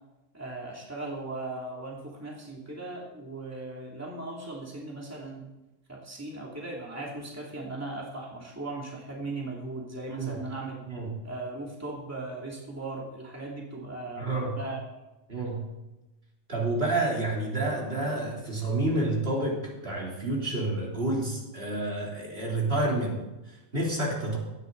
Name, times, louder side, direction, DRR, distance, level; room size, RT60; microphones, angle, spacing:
voice 1, 0.3-5.5 5.9-10.8 11.2-14.8, right 2 dB, 10° right, -4 dB, 2.9 m, -38 dB
voice 2, 10.1-10.4 10.8-11.2 14.1-14.6 15.3-15.7 16.5-24.4, right 2 dB, 50° right, -3 dB, 3.7 m, -29 dB
17.0 x 13.0 x 4.0 m, 1.0 s
omnidirectional pair, 1.3 m